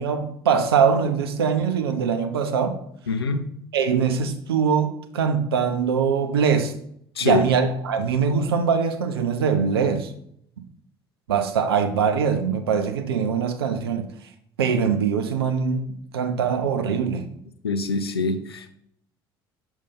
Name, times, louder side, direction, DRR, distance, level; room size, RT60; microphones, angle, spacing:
voice 1, 0.0-2.8 3.7-6.7 7.2-10.1 11.3-14.1 14.6-15.9 16.1-17.3, right 6 dB, 75° right, 7 dB, 0.6 m, -22 dB
voice 2, 3.1-3.5 7.2-7.5 17.6-18.7, left 3 dB, 85° left, 9 dB, 0.5 m, -24 dB
6.6 x 2.7 x 5.3 m, 0.70 s
figure-of-eight pair, 60°, 13 cm